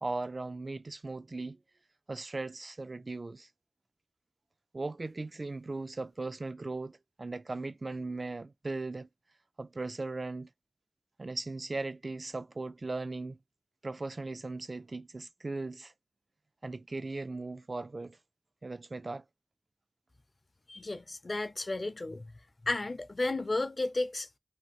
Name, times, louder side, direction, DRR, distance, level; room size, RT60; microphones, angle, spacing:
voice 1, 0.0-1.6 2.1-3.5 4.7-9.1 9.6-10.5 11.2-13.4 13.8-15.9 16.6-18.2 18.6-19.2, right 3 dB, 60° right, 0.3 m, -38 dB
voice 2, 20.7-22.2 22.7-24.4, left 2 dB, 55° left, 0.5 m, -33 dB
2.8 x 2.3 x 3.0 m
wide cardioid pair, 50°, 0 cm